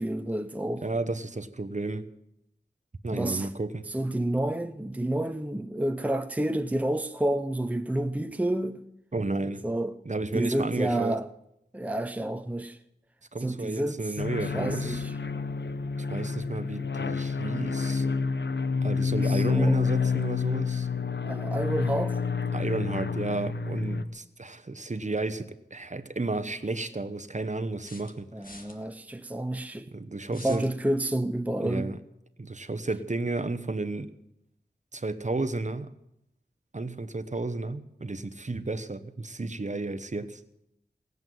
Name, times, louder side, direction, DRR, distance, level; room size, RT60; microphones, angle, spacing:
voice 1, 0.0-0.9 3.1-3.5 3.9-8.9 9.6-9.9 10.3-11.3 11.7-12.8 13.4-14.0 14.5-15.1 19.2-19.8 21.2-22.2 28.3-29.9 30.3-31.9, right 1 dB, 10° right, 0.7 m, -29 dB
voice 2, 0.8-2.1 3.0-3.9 9.1-9.6 10.0-11.2 13.3-15.0 16.1-18.1 18.8-20.9 22.5-28.7 29.9-30.6 31.6-32.0 32.4-34.1 34.9-35.9 36.7-40.4, right 3 dB, 40° right, 1.0 m, -32 dB
sound 1, 14.2-24.0, left 5 dB, 80° left, 0.8 m, -29 dB
sound 2, 27.8-28.8 30.3-30.7, left 2 dB, 50° left, 1.9 m, -47 dB
18.5 x 8.0 x 9.3 m
wide cardioid pair, 60°, 18 cm